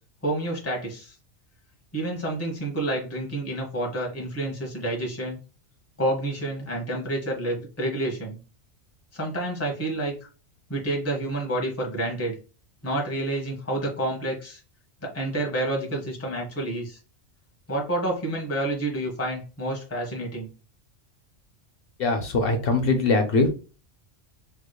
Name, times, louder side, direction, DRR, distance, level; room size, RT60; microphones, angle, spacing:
voice 1, 0.2-1.1 1.9-5.4 6.0-8.4 9.1-10.1 10.7-12.4 12.8-14.6 15.0-17.0 17.7-20.5, right 1 dB, 15° left, 0 dB, 1.0 m, -29 dB
voice 2, 22.0-23.5, left 3 dB, 60° left, 6 dB, 0.8 m, -22 dB
3.4 x 3.1 x 2.2 m, 0.33 s
omnidirectional pair, 1.2 m